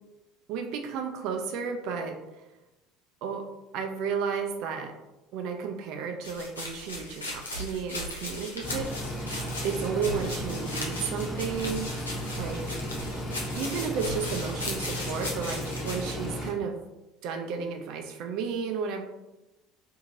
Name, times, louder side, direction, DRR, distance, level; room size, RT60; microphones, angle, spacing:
voice 1, 0.5-2.2 3.2-3.4 3.7-4.9 5.3-8.8 9.6-11.9 12.4-12.6 13.5-16.8 17.2-19.0, right 6 dB, 60° right, 5 dB, 0.4 m, -32 dB
sound 1, 6.2-16.1, left 1 dB, 90° left, 0.5 m, -37 dB
sound 2, 8.6-16.5, equal, 30° left, 1.1 m, -35 dB
2.9 x 2.7 x 2.4 m, 0.98 s
figure-of-eight pair, 65°, 0 cm